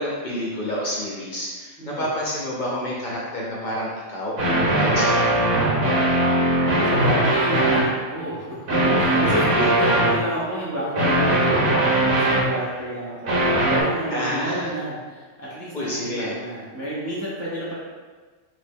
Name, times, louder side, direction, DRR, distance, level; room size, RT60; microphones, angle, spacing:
voice 1, 0.0-5.5 9.4-9.7 14.1-14.7 15.7-16.4, equal, 45° left, -5 dB, 0.7 m, -29 dB
voice 2, 1.8-2.1 6.4-17.8, equal, 20° right, -8 dB, 0.4 m, -30 dB
sound 1, 4.4-7.9 8.7-10.2 10.9-12.7 13.2-13.8, right 1 dB, 80° right, 1.2 m, -20 dB
3.1 x 2.6 x 3.5 m, 1.4 s
omnidirectional pair, 1.2 m